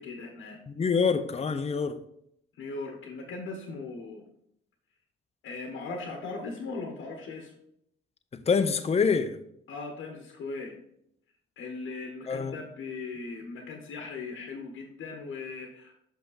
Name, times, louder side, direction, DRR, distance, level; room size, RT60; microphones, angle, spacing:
voice 1, 0.0-0.6 2.5-4.2 5.4-7.5 9.7-10.8 11.6-15.9, left 3 dB, 85° left, 1.2 m, -39 dB
voice 2, 0.7-2.0 8.3-9.4 12.3-12.6, left 5 dB, 30° left, 0.6 m, -26 dB
6.4 x 5.7 x 3.9 m
cardioid pair, 85°, 20 cm